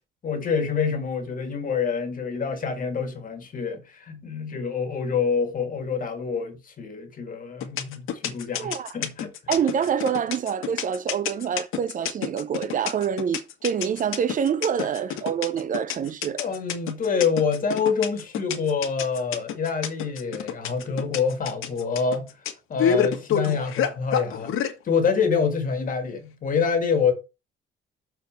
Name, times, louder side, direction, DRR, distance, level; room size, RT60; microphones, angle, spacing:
voice 1, 0.2-9.3 14.8-14.9 16.4-22.3 22.7-24.5 24.8-27.1, left 5 dB, 40° left, 2.0 m, -26 dB
sound 1, 7.6-24.7, left 8 dB, 75° left, 1.7 m, -28 dB
voice 2, 8.6-8.9 9.5-16.4, right 8 dB, 40° right, 0.7 m, -26 dB
6.8 x 4.6 x 6.3 m
cardioid pair, 155°, 21 cm